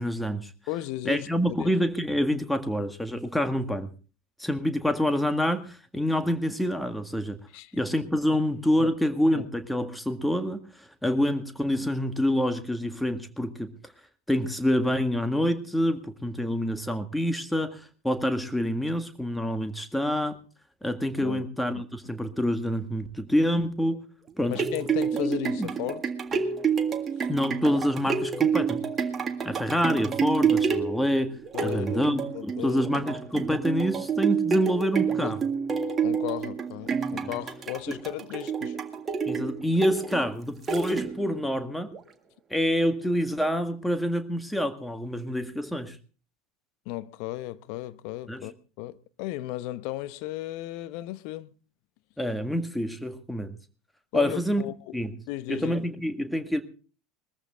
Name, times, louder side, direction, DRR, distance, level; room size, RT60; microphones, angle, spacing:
voice 1, 0.0-0.5 1.0-3.9 4.4-7.4 7.7-10.6 11.0-13.7 14.3-20.4 20.8-24.0 24.4-24.6 25.2-25.7 27.3-28.8 29.4-31.3 31.6-35.4 37.2-37.3 37.9-38.0 39.2-41.9 42.5-46.0 48.3-48.4 52.2-53.5 54.1-54.6 54.9-55.1 55.5-56.6, equal, 5° left, 1.8 m, -27 dB
voice 2, 0.7-1.7 7.5-7.7 8.8-8.9 9.3-9.4 21.2-21.8 24.5-26.1 27.2-27.3 31.5-32.0 32.3-32.9 34.9-35.4 36.0-38.8 46.9-48.5 48.8-51.5 54.1-55.0 55.3-55.7, left 16 dB, 55° left, 0.9 m, -35 dB
sound 1, 24.3-41.4 41.9-42.0, right 6 dB, 25° right, 1.9 m, -29 dB
21.0 x 14.5 x 3.6 m
figure-of-eight pair, 75°, 0 cm